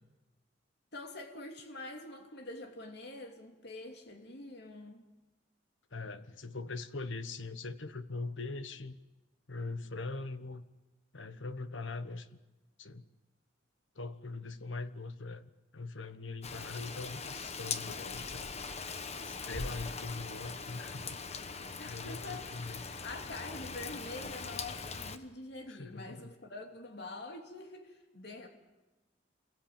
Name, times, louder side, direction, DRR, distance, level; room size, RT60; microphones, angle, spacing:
voice 1, 0.9-5.1 21.8-28.5, left 2 dB, 60° left, 2.9 m, -46 dB
voice 2, 5.9-9.0 9.5-10.6 11.1-12.3 12.8-13.0 13.9-15.4 15.7-18.5 19.2-21.2 21.8-22.8 25.7-26.3, left 3 dB, 90° left, 1.2 m, -41 dB
Rain, 16.4-25.2, left 4 dB, 35° left, 1.2 m, -41 dB
27.5 x 22.0 x 8.8 m
head